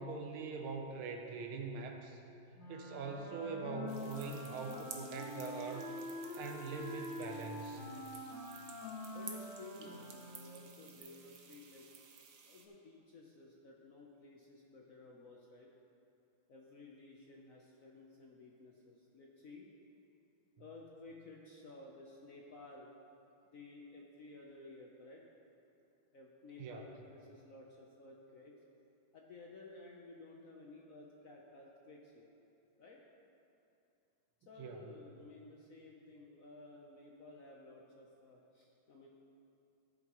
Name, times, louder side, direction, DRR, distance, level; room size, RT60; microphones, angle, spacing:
voice 1, 0.0-2.2 2.7-5.9 6.4-7.8 26.6-26.9 34.6-34.8, right 4 dB, 85° right, 4 dB, 1.7 m, -43 dB
Wind instrument woodwind instrument, 2.6-10.8, left 1 dB, 80° left, 2.4 m, -46 dB
sound 1, 3.9-12.7, right 6 dB, 60° right, 0.9 m, -54 dB
voice 2, 9.1-11.9 12.4-15.7 16.5-19.7 20.6-22.9 23.5-25.2 26.1-28.5 29.1-32.3 32.8-33.0 34.5-39.1, left 2 dB, 60° left, -1 dB, 0.9 m, -55 dB
14.0 x 7.9 x 3.0 m, 2.7 s
omnidirectional pair, 2.2 m